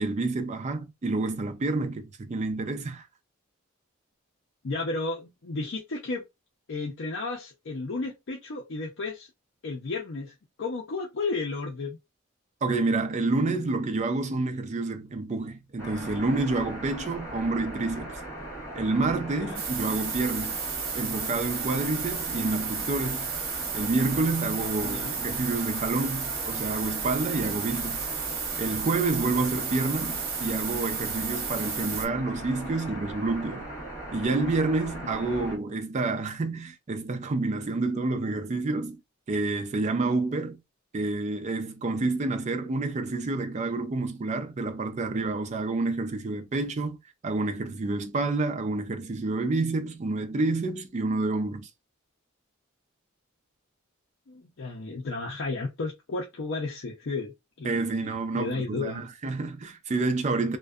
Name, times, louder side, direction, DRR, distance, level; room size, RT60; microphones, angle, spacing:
voice 1, 0.0-3.0 12.6-18.2 18.7-20.6 20.9-23.3 23.7-28.1 28.6-33.7 34.1-39.0 39.3-40.6 40.9-47.0 47.2-51.7 57.6-60.6, right 3 dB, 35° right, 0.4 m, -28 dB
voice 2, 4.6-6.2 6.7-9.3 9.6-12.0 19.4-19.6 24.8-25.2 35.0-35.4 54.3-59.0, left 3 dB, 60° left, 0.5 m, -33 dB
sound 1, 15.8-35.6, right 1 dB, 15° left, 1.1 m, -39 dB
sound 2, 19.5-32.1, right 6 dB, 75° right, 0.8 m, -33 dB
2.5 x 2.2 x 2.3 m
head